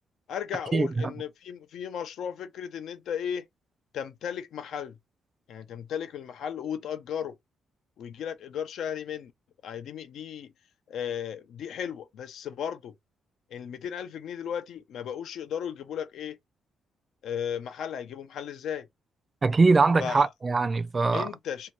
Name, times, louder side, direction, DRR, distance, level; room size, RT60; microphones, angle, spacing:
voice 1, 0.3-3.5 3.9-5.0 5.5-7.3 8.0-9.3 9.6-10.5 10.9-12.9 13.5-16.4 17.2-18.9 20.0-20.3 21.1-21.7, left 8 dB, 80° left, 0.5 m, -35 dB
voice 2, 19.4-21.3, right 3 dB, 30° right, 0.3 m, -22 dB
2.7 x 2.2 x 2.9 m
cardioid pair, 90°, 0 cm